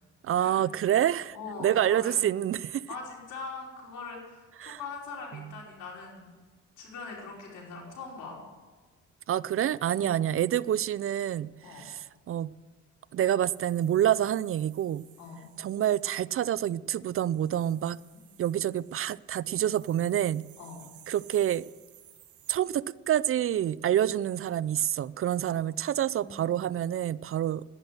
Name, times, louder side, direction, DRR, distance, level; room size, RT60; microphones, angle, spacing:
voice 1, 0.2-2.8 4.6-4.8 5.3-5.5 9.3-12.5 13.1-15.0 15.6-18.0 18.4-20.4 21.1-21.6 22.5-27.6, right 11 dB, 45° right, 0.4 m, -27 dB
voice 2, 1.3-2.2 2.9-6.4 6.8-8.4 9.9-10.2 11.6-11.8 15.2-15.5 20.6-20.8 25.6-25.7 26.1-26.4, left 4 dB, 85° left, 5.0 m, -42 dB
sound 1, 13.5-16.0 17.0-22.6, right 11 dB, 75° right, 1.3 m, -58 dB
11.5 x 10.5 x 6.6 m
cardioid pair, 90°, 30 cm